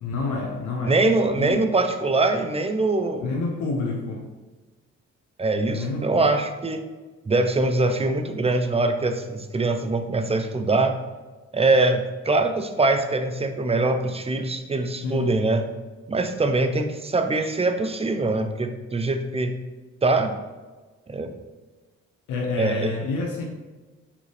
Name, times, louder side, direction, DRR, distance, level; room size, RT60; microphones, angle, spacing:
voice 1, 0.0-1.0 1.4-1.6 3.2-4.3 5.7-6.4 15.0-15.4 22.3-23.5, left 3 dB, 85° left, 1 dB, 1.0 m, -28 dB
voice 2, 0.8-3.3 5.4-6.8 7.3-10.9 11.5-15.7 16.1-19.6 20.0-20.4 21.1-21.3 22.6-22.9, right 2 dB, 20° right, 6 dB, 0.7 m, -23 dB
6.8 x 5.0 x 3.5 m, 1.3 s
cardioid pair, 90°, 30 cm